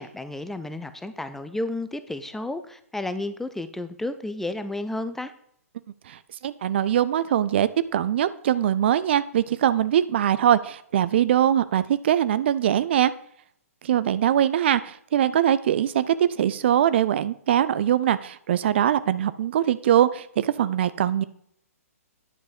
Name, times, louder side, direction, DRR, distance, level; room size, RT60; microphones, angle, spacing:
voice 1, 0.0-5.3, left 2 dB, 5° left, 11 dB, 0.5 m, -32 dB
voice 2, 6.1-13.1 13.8-21.2, right 10 dB, 45° right, 15 dB, 0.5 m, -22 dB
9.6 x 5.2 x 5.2 m, 0.66 s
figure-of-eight pair, 120°, 8 cm